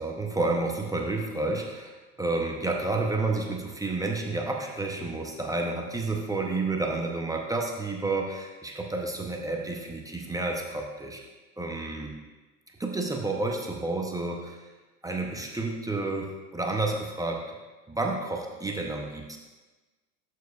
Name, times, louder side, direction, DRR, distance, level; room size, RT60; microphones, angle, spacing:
voice 1, 0.0-11.2 11.6-12.1 12.8-14.7 15.0-17.5 17.9-19.4, right 2 dB, 10° right, 0 dB, 0.7 m, -30 dB
13.0 x 4.7 x 2.4 m, 1.2 s
hypercardioid pair, 95°, 46 cm